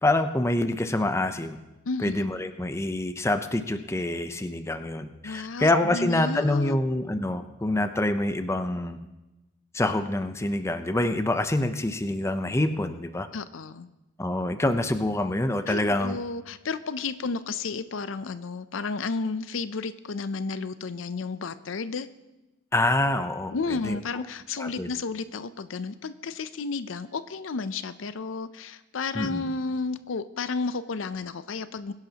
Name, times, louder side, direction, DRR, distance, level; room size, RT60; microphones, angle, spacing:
voice 1, 0.0-1.6 2.0-9.0 9.7-13.3 14.2-16.2 22.7-23.5 23.8-24.0 24.6-24.9 29.1-29.4, left 1 dB, 15° left, 8 dB, 0.6 m, -26 dB
voice 2, 5.2-6.8 13.3-13.9 15.7-22.1 23.5-31.9, left 4 dB, 80° left, 14 dB, 0.6 m, -32 dB
23.0 x 10.5 x 2.9 m, 1.0 s
head